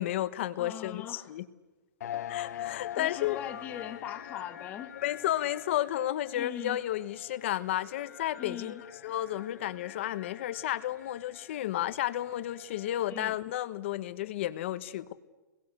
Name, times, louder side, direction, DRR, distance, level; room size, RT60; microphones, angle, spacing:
voice 1, 0.0-1.4 2.3-3.4 5.0-8.8 9.0-15.1, left 13 dB, 40° left, 13 dB, 1.1 m, -32 dB
voice 2, 0.6-1.3 2.0-2.2 2.5-5.0 6.3-6.8 8.4-8.8 13.1-13.4, left 10 dB, 15° left, 6 dB, 1.4 m, -41 dB
sound 1, 2.0-13.4, left 11 dB, 60° left, 1.3 m, -44 dB
29.0 x 21.5 x 8.4 m, 1.2 s
hypercardioid pair, 175°, 10 cm